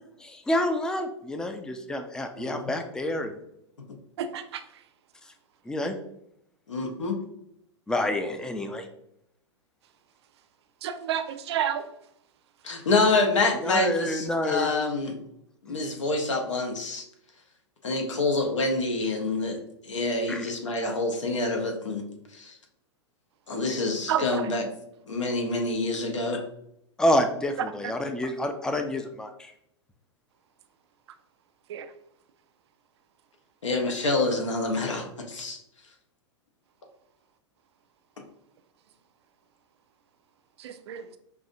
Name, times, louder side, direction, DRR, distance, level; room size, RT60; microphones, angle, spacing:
voice 1, 0.2-3.3 5.7-6.0 7.9-8.8 13.6-14.7 15.7-15.8 20.3-20.5 27.0-29.5, left 1 dB, 5° left, 6 dB, 0.4 m, -28 dB
voice 2, 2.4-2.7 6.7-7.2 12.6-15.2 15.6-17.0 17.8-22.1 22.3-22.6 23.5-24.7 25.1-26.4 33.6-35.6, left 2 dB, 80° left, 2 dB, 0.9 m, -27 dB
voice 3, 4.2-4.6 10.8-11.8 24.1-24.2 31.7-31.9 40.6-41.0, right 9 dB, 60° right, 10 dB, 0.4 m, -29 dB
5.6 x 2.7 x 2.6 m, 0.76 s
figure-of-eight pair, 100°, 16 cm